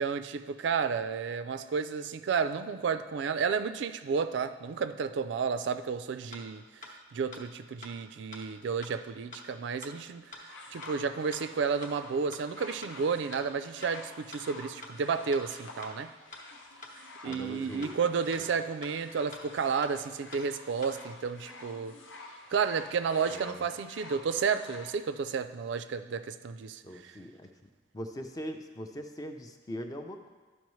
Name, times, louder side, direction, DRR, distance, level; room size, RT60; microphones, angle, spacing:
voice 1, 0.0-16.1 17.2-21.9 22.5-27.2, right 5 dB, 65° right, 11 dB, 0.3 m, -32 dB
sound 1, 5.8-5.9 6.3-6.4 6.8-6.9 7.3-7.4 7.8-7.9 8.3-8.4 8.8-8.9 9.3-9.4 9.8-9.9 10.3-10.4 10.8-10.9 11.3-11.4 11.8-11.9 12.3-12.4 12.8-12.9 13.3-13.4 13.8-13.9 14.3-14.4 14.8-14.9 15.3-15.4 15.8-15.9 16.3-16.4 16.8-16.9 17.3-17.4 17.8-17.9 18.3-18.4 18.8-18.9 19.3-19.4 19.8-19.9 20.3-20.4 20.8-20.9, left 3 dB, 40° left, 0.9 m, -46 dB
sound 2, 10.4-25.0 25.8-25.9, left 2 dB, 80° left, 0.9 m, -49 dB
voice 2, 17.2-17.9 18.4-18.5 23.3-23.6 26.8-27.5 27.9-30.3, equal, 20° left, 5 dB, 0.5 m, -41 dB
11.5 x 5.3 x 3.1 m, 1.4 s
head